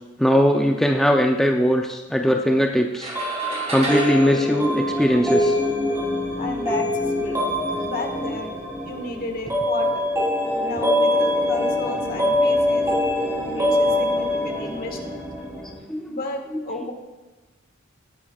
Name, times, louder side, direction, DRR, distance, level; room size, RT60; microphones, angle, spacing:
voice 1, 0.2-3.1 3.7-5.6 13.7-13.8 15.9-16.9, equal, ahead, 2 dB, 0.5 m, -20 dB
sound 1, 2.9-5.6, right 1 dB, 35° right, 2.0 m, -32 dB
sound 2, 3.1-15.7, left 1 dB, 15° right, 3.3 m, -23 dB
voice 2, 6.4-7.4 7.8-8.5 8.8-10.1 10.6-12.9 13.5-15.1 16.1-16.9, left 2 dB, 45° left, 3 dB, 1.6 m, -32 dB
18.0 x 10.0 x 2.4 m, 1.2 s
head